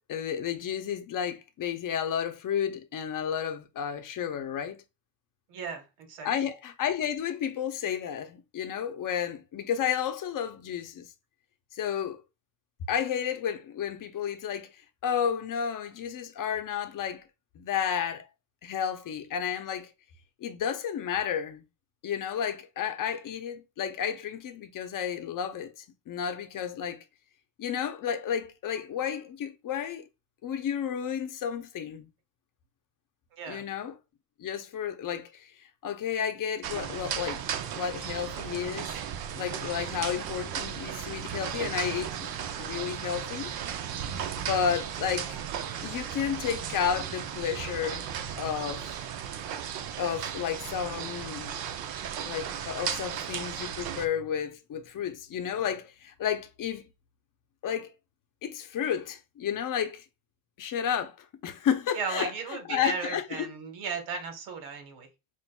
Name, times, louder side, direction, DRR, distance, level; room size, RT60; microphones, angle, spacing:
voice 1, 0.1-4.8 6.2-11.1 11.7-12.2 12.9-14.7 15.0-17.2 17.6-18.3 18.6-19.9 20.4-21.6 22.0-27.0 27.6-30.1 30.4-32.1 33.5-34.0 34.4-37.4 37.8-38.9 39.4-42.3 42.6-43.5 44.4-45.4 45.8-48.1 48.4-48.9 50.0-51.6 52.2-56.9 57.6-57.9 58.4-60.0 60.6-62.3 62.7-63.5, left 8 dB, 40° left, 0.7 m, -32 dB
voice 2, 5.5-6.3 33.3-33.6 61.9-65.1, right 5 dB, 90° right, 1.5 m, -36 dB
sound 1, 36.6-54.1, right 9 dB, 50° right, 0.6 m, -35 dB
5.9 x 2.6 x 2.3 m
cardioid pair, 110°, 48 cm